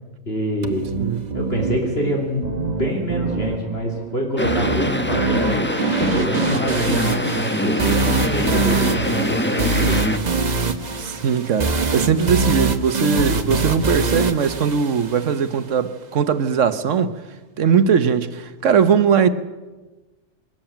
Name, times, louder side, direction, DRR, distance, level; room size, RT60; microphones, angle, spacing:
voice 1, 0.3-0.9 1.3-10.2, equal, 50° left, 3.5 m, -26 dB
sound 1, 0.6-15.6, right 4 dB, 35° right, 1.1 m, -24 dB
sound 2, 4.4-10.2, left 1 dB, 10° left, 0.9 m, -24 dB
voice 2, 11.0-17.2 17.6-19.3, right 6 dB, 70° right, 1.3 m, -19 dB
22.0 x 13.0 x 9.0 m
omnidirectional pair, 1.3 m